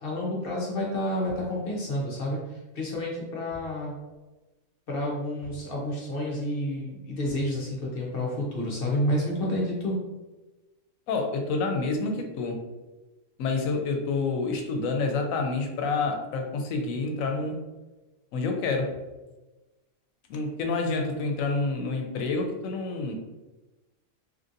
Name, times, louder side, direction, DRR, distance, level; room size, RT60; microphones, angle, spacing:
voice 1, 0.0-3.9 4.9-10.0, left 1 dB, 55° left, -3 dB, 0.8 m, -30 dB
sound 1, 1.3-1.6 3.5-3.8 4.1-4.2 5.4-5.7 7.3-7.5, left 1 dB, 15° left, 1.3 m, -48 dB
voice 2, 11.1-12.6 13.4-17.6 18.3-18.9 20.3-23.1, left 3 dB, 80° left, 3 dB, 1.0 m, -28 dB
3.1 x 2.6 x 2.5 m, 1.1 s
omnidirectional pair, 1.4 m